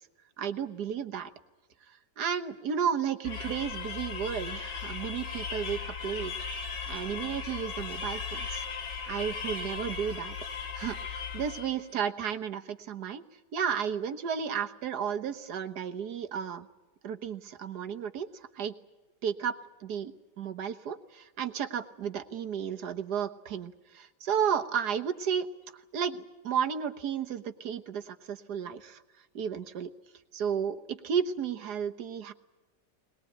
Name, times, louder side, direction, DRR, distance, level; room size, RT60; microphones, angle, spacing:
voice 1, 0.4-1.3 1.9-6.3 6.7-8.6 9.1-10.3 10.7-13.2 13.5-16.7 17.0-18.7 19.2-29.0 29.3-29.9 30.3-32.3, right 7 dB, 65° right, 8 dB, 1.7 m, -33 dB
sound 1, 3.2-11.8, left 5 dB, 85° left, 2.9 m, -37 dB
21.0 x 21.0 x 9.0 m, 1.1 s
omnidirectional pair, 1.9 m